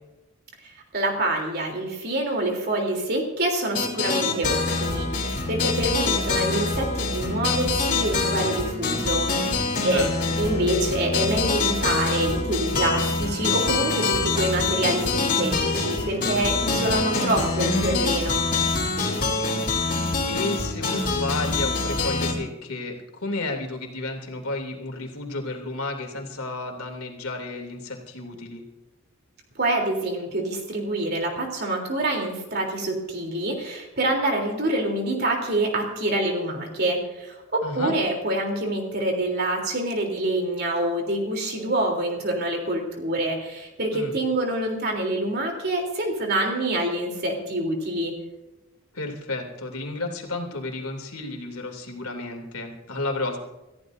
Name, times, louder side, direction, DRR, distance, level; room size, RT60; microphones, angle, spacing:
voice 1, 0.6-10.1 10.4-18.4 29.5-48.1, right 1 dB, 50° right, 2 dB, 3.4 m, -26 dB
sound 1, 3.7-22.3, left 3 dB, 40° left, 3.4 m, -25 dB
voice 2, 9.8-10.3 16.6-16.9 19.1-28.6 37.6-38.0 43.9-44.2 48.9-53.4, left 2 dB, 80° left, 2 dB, 2.9 m, -32 dB
28.0 x 14.5 x 2.7 m, 1.0 s
head